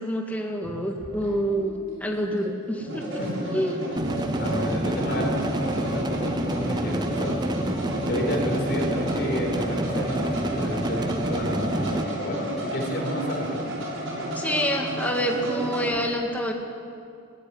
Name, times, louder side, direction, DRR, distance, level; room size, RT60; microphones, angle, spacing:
voice 1, 0.0-1.7 2.0-3.2 3.5-3.8 14.4-16.5, equal, 5° left, 1 dB, 2.0 m, -27 dB
sound 1, 0.6-16.0, equal, 70° right, 6.6 m, -32 dB
sound 2, 4.0-12.0, right 1 dB, 20° right, 0.6 m, -29 dB
voice 2, 4.4-7.7 8.1-13.6, equal, 50° left, 1 dB, 4.5 m, -31 dB
17.5 x 16.5 x 9.7 m, 2.3 s
head